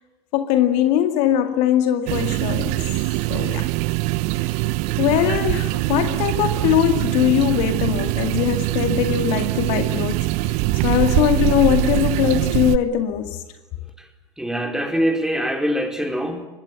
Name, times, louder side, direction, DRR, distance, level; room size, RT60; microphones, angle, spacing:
voice 1, 0.3-2.8 3.3-3.7 4.4-4.7 5.0-10.6 10.8-13.4, left 11 dB, 55° left, 8 dB, 2.1 m, -21 dB
sound 1, 2.1-12.8, right 21 dB, 55° right, 0.9 m, -23 dB
voice 2, 14.4-16.5, equal, 5° right, 4 dB, 4.6 m, -23 dB
25.0 x 21.0 x 9.4 m, 0.99 s
hypercardioid pair, 80°, 14 cm